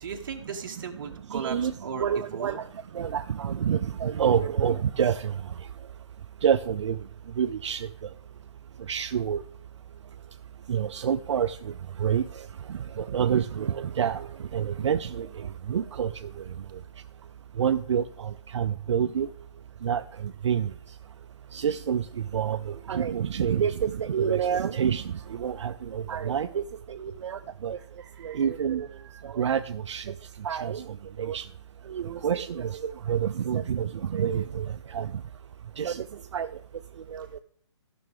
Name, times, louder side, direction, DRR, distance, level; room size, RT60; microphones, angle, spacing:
voice 1, 0.0-2.6 19.7-19.8 27.7-28.4 29.0-29.3, right 6 dB, 45° right, 3 dB, 1.3 m, -38 dB
voice 2, 1.3-1.7 2.0-2.6 2.9-5.3 6.4-7.0 7.4-7.9 8.9-9.4 10.7-11.7 12.0-16.4 17.6-19.3 19.8-20.0 20.4-20.7 21.5-27.8 28.2-28.9 29.2-30.1 30.4-30.8 31.2-31.4 31.9-35.1 35.8-36.1 36.3-36.5 37.1-37.3, right 8 dB, 70° right, 9 dB, 0.4 m, -28 dB
14.5 x 6.0 x 3.7 m, 0.63 s
hypercardioid pair, 165°, 16 cm